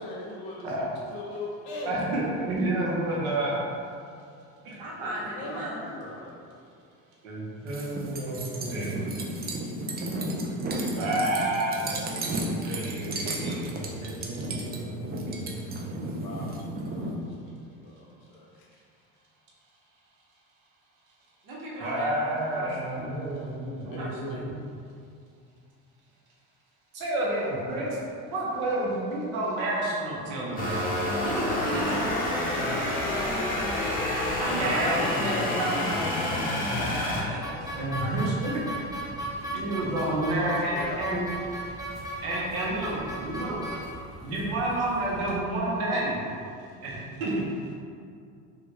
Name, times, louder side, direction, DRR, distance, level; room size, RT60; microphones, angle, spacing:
voice 1, 0.0-1.9 4.7-6.4 16.0-18.5 23.8-24.0 24.3-24.4 39.9-41.0, left 2 dB, 60° left, -2 dB, 0.8 m, -40 dB
voice 2, 1.8-3.6 4.6-4.8 7.2-8.9 10.4-10.5 10.9-15.9 21.8-24.5 26.9-28.0 28.3-30.9 34.4-35.4 37.8-38.6 38.9-39.1 39.5-41.2 42.2-43.6 44.2-46.2 46.8-47.3, right 1 dB, 90° right, -5 dB, 0.8 m, -30 dB
voice 3, 4.8-5.9 21.4-23.1 24.0-24.5 31.1-32.0 34.2-36.0 36.7-37.7 38.0-38.1, right 1 dB, 55° right, -5 dB, 1.0 m, -35 dB
sound 1, 7.7-17.1, right 1 dB, 25° right, 0.4 m, -33 dB
sound 2, 30.6-37.2, left 1 dB, 20° left, 0.8 m, -28 dB
sound 3, 37.4-45.4, right 1 dB, 10° right, 0.8 m, -37 dB
3.1 x 2.4 x 3.0 m, 2.4 s
hypercardioid pair, 75°, 41 cm